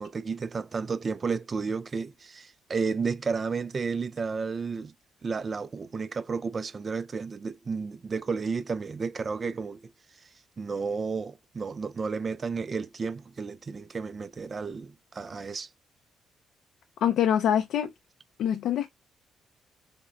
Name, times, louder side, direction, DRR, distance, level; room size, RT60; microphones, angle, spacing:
voice 1, 0.0-4.9 5.2-9.9 10.2-10.3 10.6-15.7, right 5 dB, 35° right, 0.3 m, -32 dB
voice 2, 17.0-17.9 18.4-18.9, left 9 dB, 75° left, 0.4 m, -24 dB
5.0 x 2.0 x 2.3 m
cardioid pair, 90°, 0 cm